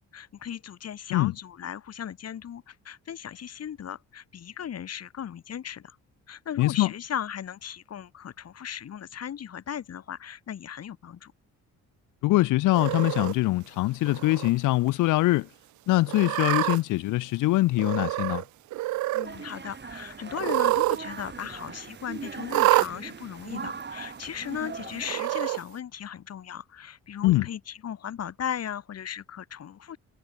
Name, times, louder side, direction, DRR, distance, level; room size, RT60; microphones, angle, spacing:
voice 1, 0.1-6.0 6.3-11.3 19.1-30.0, left 9 dB, 55° left, 2.3 m, -37 dB
voice 2, 6.6-6.9 12.2-15.5 15.9-18.4 27.2-27.5, left 18 dB, 85° left, 0.7 m, -23 dB
Cat, 12.7-13.3 14.1-14.5 14.9-15.0 16.1-16.8 17.8-18.4 18.7-19.3 20.3-21.0 21.3-21.4 22.5-22.9 23.8-23.9 25.0-25.6, right 18 dB, 70° right, 0.4 m, -26 dB
sound 1, 19.2-25.1, right 5 dB, 35° right, 6.5 m, -41 dB
cardioid pair, 90°, 30 cm